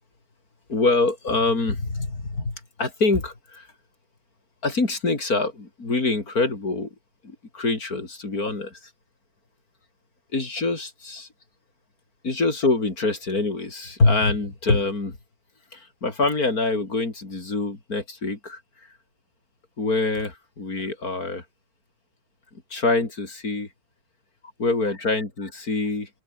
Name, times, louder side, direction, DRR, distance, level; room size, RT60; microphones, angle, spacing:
voice 1, 0.7-3.7 4.6-6.9 7.2-8.8 10.3-11.3 12.2-15.2 15.7-18.6 19.8-21.4 22.7-23.7 24.6-26.1, left 3 dB, 45° left, 4.4 m, -25 dB
omnidirectional pair, 2.1 m